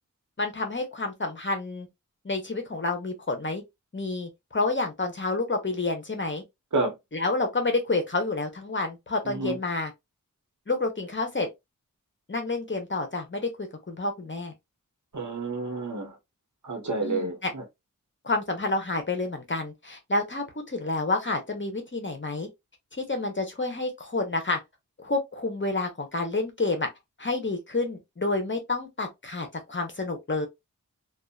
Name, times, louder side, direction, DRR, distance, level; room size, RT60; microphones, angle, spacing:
voice 1, 0.4-1.9 2.2-3.6 3.9-6.4 7.1-9.9 10.7-11.5 12.3-14.5 17.0-17.5 18.2-22.5 22.9-24.6 25.0-26.9 27.2-30.5, left 2 dB, 35° left, 0.9 m, -29 dB
voice 2, 9.2-9.6 15.1-16.2 16.6-17.6, right 3 dB, 60° right, 1.2 m, -29 dB
2.7 x 2.4 x 2.3 m
wide cardioid pair, 65°, 34 cm